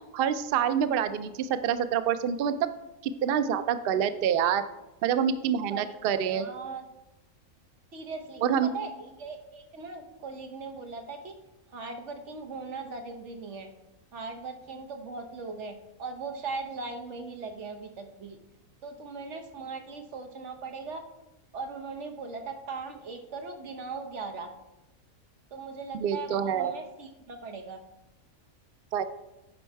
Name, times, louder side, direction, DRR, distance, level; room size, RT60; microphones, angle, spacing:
voice 1, 0.1-2.7 3.0-4.6 5.0-6.5 8.4-8.7 25.9-26.7 28.9-29.0, right 8 dB, 80° right, 12 dB, 0.5 m, -26 dB
voice 2, 6.3-6.8 7.9-8.4 8.7-11.3 11.7-13.7 14.1-18.4 18.8-21.0 21.5-24.5 25.5-27.8, right 4 dB, 55° right, 5 dB, 1.2 m, -39 dB
9.6 x 5.3 x 4.6 m, 0.97 s
omnidirectional pair, 1.5 m